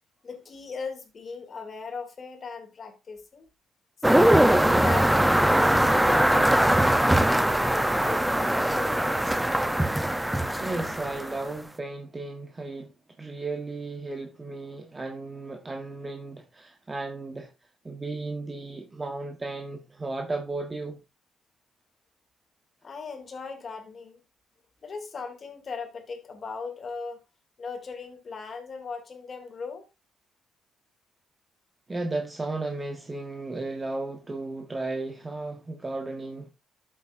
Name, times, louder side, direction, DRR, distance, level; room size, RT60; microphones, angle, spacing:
voice 1, 0.2-3.5 4.1-9.4 22.8-24.2 24.8-27.2 27.6-29.9, left 5 dB, 45° left, 2.8 m, -38 dB
sound 1, 4.0-11.5, right 1 dB, 5° right, 0.8 m, -21 dB
voice 2, 10.6-17.5 17.8-21.0 31.9-36.5, right 2 dB, 25° right, 1.4 m, -34 dB
12.5 x 7.6 x 2.7 m
cardioid pair, 90°, 0 cm